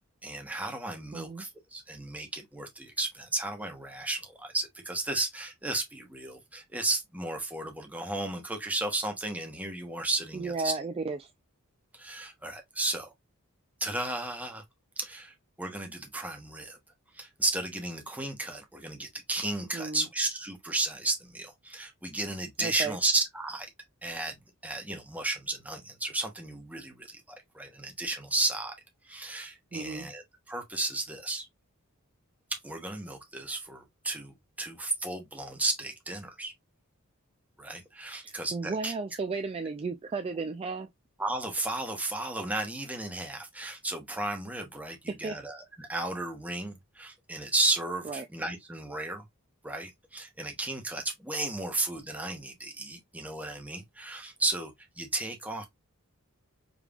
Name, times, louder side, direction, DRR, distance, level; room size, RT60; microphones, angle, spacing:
voice 1, 0.2-10.7 11.9-13.1 13.8-14.6 15.0-16.8 17.1-23.7 24.0-24.4 24.6-28.7 29.0-31.5 32.6-36.5 37.6-38.9 41.2-49.2 49.6-55.6, right 2 dB, 5° right, 1.0 m, -34 dB
voice 2, 1.1-1.4 10.3-11.3 19.7-20.1 22.6-23.0 29.7-30.1 38.2-40.9 45.1-45.4 48.0-48.3, right 4 dB, 25° right, 0.3 m, -34 dB
5.2 x 3.2 x 2.4 m
head